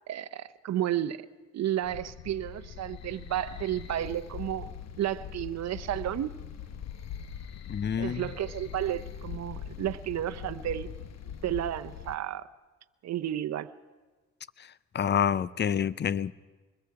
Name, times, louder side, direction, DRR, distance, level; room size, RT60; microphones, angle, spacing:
voice 1, 0.1-1.2 1.5-6.3 8.0-10.9 11.4-12.5 13.0-13.7, right 11 dB, 60° right, 0.8 m, -32 dB
sound 1, 1.8-12.2, left 8 dB, 60° left, 1.1 m, -42 dB
voice 2, 7.7-8.3 14.9-16.3, left 8 dB, 35° left, 0.6 m, -27 dB
25.5 x 21.5 x 4.8 m
cardioid pair, 90°, 30 cm